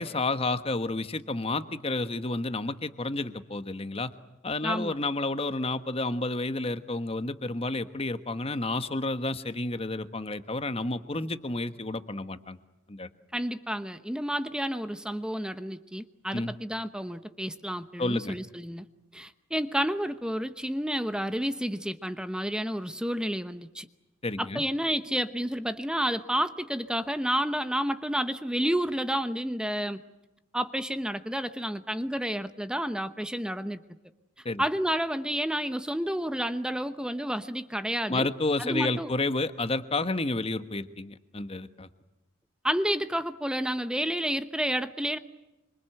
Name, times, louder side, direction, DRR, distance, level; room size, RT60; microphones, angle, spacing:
voice 1, 0.0-4.1 4.4-12.6 12.9-13.1 16.3-16.5 18.0-18.4 24.2-24.6 34.4-34.6 38.1-41.9, left 2 dB, 30° left, 11 dB, 1.3 m, -30 dB
voice 2, 4.6-4.9 13.3-18.9 19.1-23.9 24.4-30.0 30.5-33.8 34.6-38.3 38.6-39.1 42.6-45.2, equal, 5° right, 10 dB, 0.9 m, -30 dB
26.5 x 25.5 x 7.9 m, 1.0 s
head